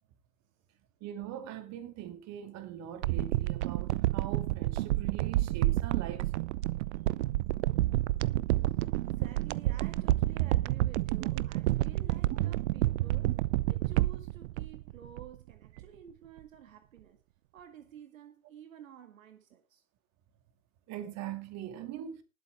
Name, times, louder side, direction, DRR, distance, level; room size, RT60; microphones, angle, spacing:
voice 1, 1.0-6.3 11.2-11.4 13.2-13.3 20.9-22.2, right 10 dB, 40° right, 2.7 m, -41 dB
sound 1, 3.0-15.5 15.8-15.9, right 17 dB, 60° right, 0.7 m, -29 dB
voice 2, 9.0-13.3 13.7-17.2 17.5-19.8, right 8 dB, 75° right, 1.9 m, -52 dB
19.5 x 8.1 x 3.6 m
hypercardioid pair, 95°, 40 cm